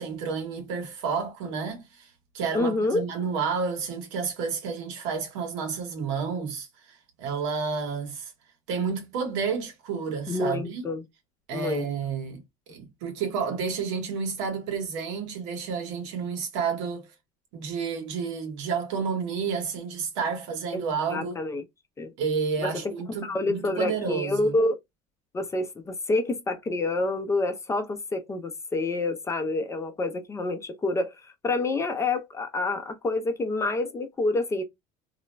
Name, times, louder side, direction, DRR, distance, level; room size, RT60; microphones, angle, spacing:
voice 1, 0.0-2.1 2.3-6.7 7.2-8.3 8.7-10.8 11.5-12.4 12.7-17.1 17.5-21.4 22.2-24.5, right 5 dB, 85° right, 1.0 m, -30 dB
voice 2, 2.5-3.0 10.3-11.0 11.5-11.9 20.7-21.6 22.0-22.1 22.6-22.8 23.1-24.8 25.3-34.6, left 2 dB, 20° left, 0.5 m, -28 dB
2.4 x 2.0 x 3.1 m
supercardioid pair, 120°, 15 cm